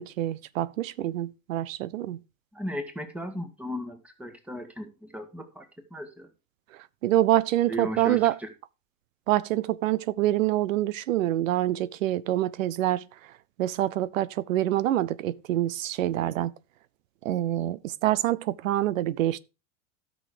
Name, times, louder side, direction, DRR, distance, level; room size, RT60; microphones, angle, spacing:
voice 1, 0.0-2.2 7.0-8.4 9.3-13.1 13.6-16.5 17.2-19.4, right 14 dB, 90° right, 0.8 m, -26 dB
voice 2, 2.5-5.7 5.9-6.3 7.7-8.5, equal, 5° right, 2.0 m, -36 dB
12.5 x 6.4 x 5.0 m
supercardioid pair, 135°, 38 cm